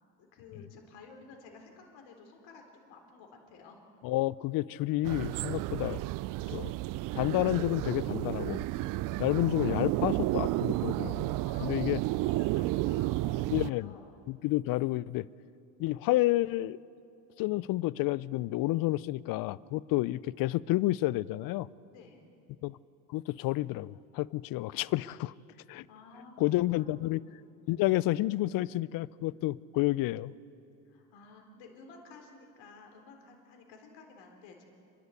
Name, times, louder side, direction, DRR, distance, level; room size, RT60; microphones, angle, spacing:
voice 1, 0.2-3.8 11.4-14.2 21.9-22.2 25.9-26.3 26.7-27.1 30.9-34.7, left 4 dB, 60° left, 3 dB, 4.0 m, -53 dB
voice 2, 4.0-6.0 6.5-6.7 7.1-8.7 9.2-11.3 11.6-12.0 13.5-13.9 14.3-15.2 15.8-16.8 17.4-21.7 22.6-22.8 23.1-25.3 25.7-25.9 26.4-27.2 27.7-30.3, left 17 dB, 45° left, 22 dB, 0.5 m, -30 dB
sound 1, 5.0-13.7, right 17 dB, 45° right, 0.5 m, -32 dB
30.0 x 11.5 x 8.4 m, 2.6 s
hypercardioid pair, 85°, 50 cm